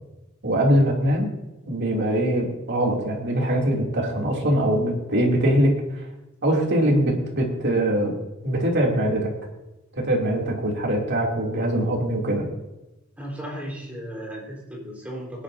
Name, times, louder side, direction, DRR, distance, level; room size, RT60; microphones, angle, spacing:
voice 1, 0.4-1.3 1.6-6.1 6.4-8.1 8.4-9.3 9.9-12.5, right 1 dB, 55° right, -1 dB, 2.9 m, -22 dB
voice 2, 13.2-15.4, equal, 5° right, -3 dB, 4.2 m, -35 dB
20.0 x 11.0 x 2.7 m, 1.0 s
head